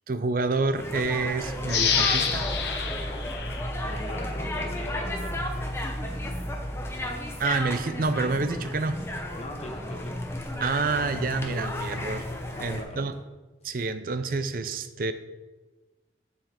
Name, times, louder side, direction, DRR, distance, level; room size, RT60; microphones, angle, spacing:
voice 1, 0.1-2.5 7.4-9.0 10.6-12.2 12.6-13.1 13.6-15.1, right 3 dB, 50° right, 11 dB, 0.5 m, -28 dB
sound 1, 0.7-12.8, left 1 dB, 15° left, 0.9 m, -34 dB
sound 2, 1.4-6.9, right 1 dB, 80° right, 2.3 m, -37 dB
sound 3, 1.7-4.4 4.8-4.9, left 6 dB, 70° left, 0.9 m, -28 dB
voice 2, 3.8-5.4 9.4-10.1 11.7-12.1 12.5-13.2, left 1 dB, 35° left, 1 dB, 1.4 m, -40 dB
7.6 x 7.2 x 4.4 m, 1.2 s
head